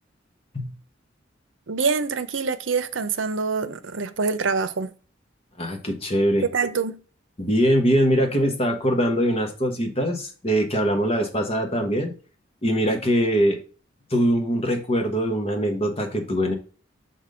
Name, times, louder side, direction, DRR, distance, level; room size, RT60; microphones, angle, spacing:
voice 1, 1.7-4.9 6.4-7.0, right 5 dB, 75° right, 0.7 m, -25 dB
voice 2, 5.6-6.4 7.4-12.1 12.6-13.6 14.1-16.5, equal, 30° left, 1.2 m, -22 dB
6.0 x 4.0 x 5.0 m
head